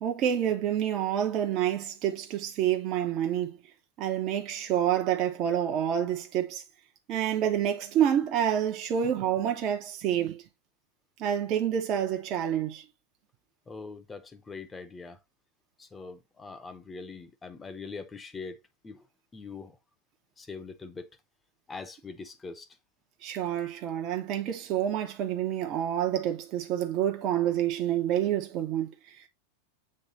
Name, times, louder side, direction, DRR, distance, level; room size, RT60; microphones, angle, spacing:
voice 1, 0.0-3.6 4.0-6.6 7.1-10.4 11.2-12.8 23.2-29.2, right 10 dB, 45° right, 1.0 m, -28 dB
voice 2, 13.7-15.2 15.8-19.1 19.3-19.8 20.4-21.1 21.7-22.7, left 4 dB, 15° left, 1.0 m, -42 dB
7.6 x 3.2 x 4.2 m
figure-of-eight pair, 95°, 0 cm